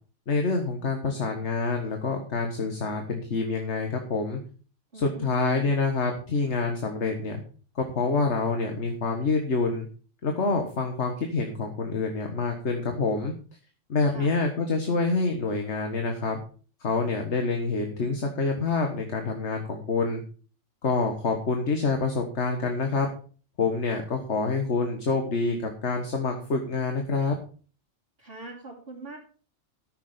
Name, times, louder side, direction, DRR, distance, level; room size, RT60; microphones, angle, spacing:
voice 1, 0.3-4.4 4.9-7.4 7.8-9.9 10.2-13.3 13.9-16.4 16.8-20.2 20.8-23.1 23.6-27.4, left 4 dB, 70° left, 3 dB, 1.8 m, -27 dB
voice 2, 4.9-5.7 14.1-14.3 28.2-29.2, right 3 dB, 50° right, -7 dB, 3.1 m, -42 dB
13.5 x 6.9 x 5.0 m, 0.39 s
omnidirectional pair, 1.2 m